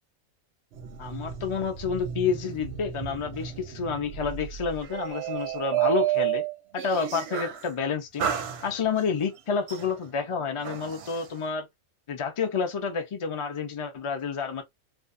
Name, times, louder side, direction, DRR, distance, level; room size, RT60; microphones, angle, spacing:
sound 1, 0.7-7.7 8.2-9.1 9.7-11.3, right 11 dB, 60° right, 0.7 m, -32 dB
voice 1, 1.0-6.4 6.7-8.3 8.6-11.7 12.1-14.6, left 5 dB, 45° left, 0.3 m, -29 dB
2.5 x 2.3 x 2.5 m
omnidirectional pair, 1.5 m